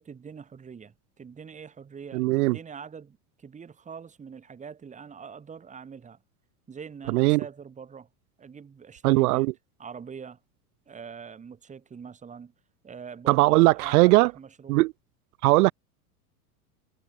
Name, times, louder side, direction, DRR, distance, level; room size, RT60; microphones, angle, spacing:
voice 1, 0.0-6.2 6.7-8.1 8.4-9.5 9.8-10.4 10.9-12.5 12.8-14.8, right 6 dB, 15° right, 2.5 m, -43 dB
voice 2, 2.1-2.6 7.1-7.4 9.0-9.5 13.3-14.3 14.7-14.9 15.4-15.7, right 21 dB, 70° right, 0.5 m, -19 dB
supercardioid pair, 135°, 46 cm